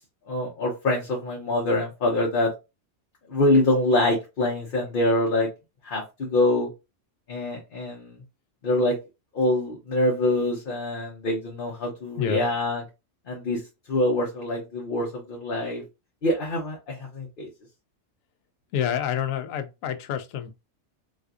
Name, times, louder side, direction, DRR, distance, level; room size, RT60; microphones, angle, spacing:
voice 1, 0.3-2.5 3.3-5.5 5.8-6.7 7.3-8.2 8.6-9.0 9.3-12.8 13.3-13.6 13.9-15.8 16.2-17.5, left 1 dB, 45° left, 0.9 m, -25 dB
voice 2, 18.7-20.6, left 9 dB, 85° left, 1.0 m, -28 dB
4.1 x 2.5 x 2.4 m
omnidirectional pair, 1.3 m